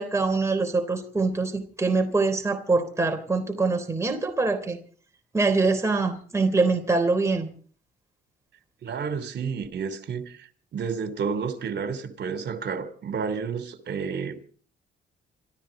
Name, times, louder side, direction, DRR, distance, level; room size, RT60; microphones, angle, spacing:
voice 1, 0.0-4.8 5.3-7.5, right 3 dB, 15° right, 3.5 m, -24 dB
voice 2, 8.8-14.4, right 6 dB, 60° right, 3.1 m, -31 dB
26.0 x 14.0 x 3.9 m
cardioid pair, 90°, 20 cm